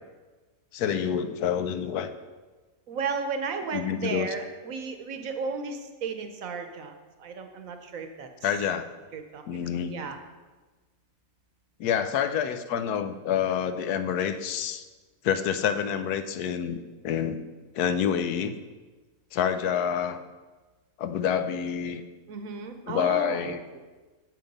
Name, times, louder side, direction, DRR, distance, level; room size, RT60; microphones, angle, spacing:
voice 1, 0.7-2.1 3.7-4.3 8.4-8.9 9.5-9.9 11.8-14.8 15.2-17.4 17.7-18.5 19.3-20.2 21.0-22.0 22.9-23.6, left 8 dB, 85° left, 10 dB, 1.2 m, -27 dB
voice 2, 2.9-8.3 9.1-10.2 22.3-23.5, right 5 dB, 65° right, 7 dB, 1.2 m, -34 dB
7.7 x 7.6 x 5.3 m, 1.3 s
omnidirectional pair, 1.6 m